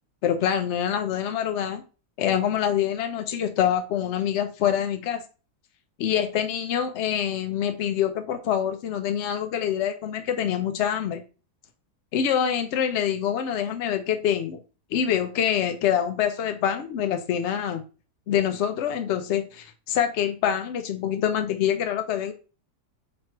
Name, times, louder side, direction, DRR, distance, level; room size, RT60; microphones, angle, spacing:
voice 1, 0.2-1.8 2.2-5.2 6.0-11.2 12.1-14.6 14.9-17.8 18.3-22.3, left 9 dB, 90° left, 0.6 m, -25 dB
3.2 x 3.0 x 4.4 m
omnidirectional pair, 1.8 m